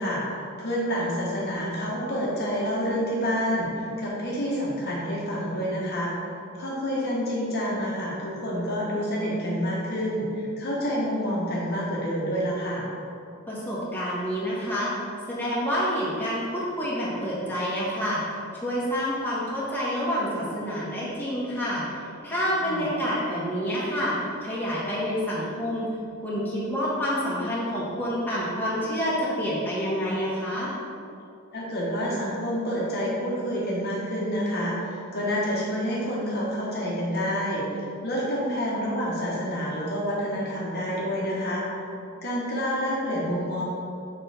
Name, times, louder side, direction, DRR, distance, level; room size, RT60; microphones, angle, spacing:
voice 1, 0.0-6.3 6.5-12.9 22.6-22.9 31.5-41.6 42.2-43.6, equal, 50° left, -5 dB, 1.2 m, -28 dB
voice 2, 13.5-14.9 15.3-25.9 26.2-30.7, equal, 10° left, -8 dB, 1.4 m, -28 dB
6.7 x 5.2 x 3.4 m, 2.6 s
head